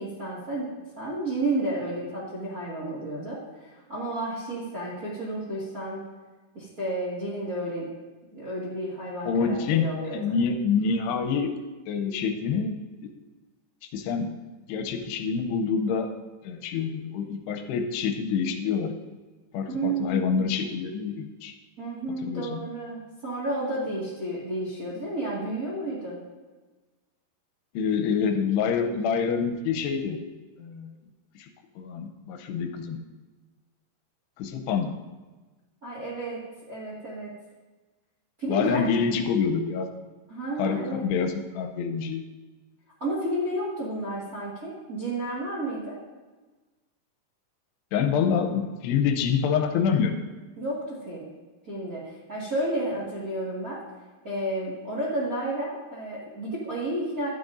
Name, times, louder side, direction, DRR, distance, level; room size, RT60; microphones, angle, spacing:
voice 1, 0.0-6.0 6.5-7.9 8.3-10.3 19.7-20.6 21.8-26.2 35.8-37.3 38.4-38.8 40.3-41.1 43.0-45.9 50.6-51.3 51.6-53.8 54.2-57.3, right 1 dB, 40° right, -7 dB, 1.2 m, -31 dB
voice 2, 9.3-9.9 10.1-11.5 11.9-12.7 13.9-14.3 14.7-16.1 16.4-18.9 19.5-21.5 22.2-22.6 27.7-30.2 30.6-30.9 31.4-31.5 31.8-33.0 34.4-34.9 38.5-39.9 40.6-42.2 47.9-50.2, left 6 dB, 85° left, 5 dB, 2.8 m, -26 dB
12.0 x 10.0 x 2.6 m, 1.3 s
omnidirectional pair, 4.8 m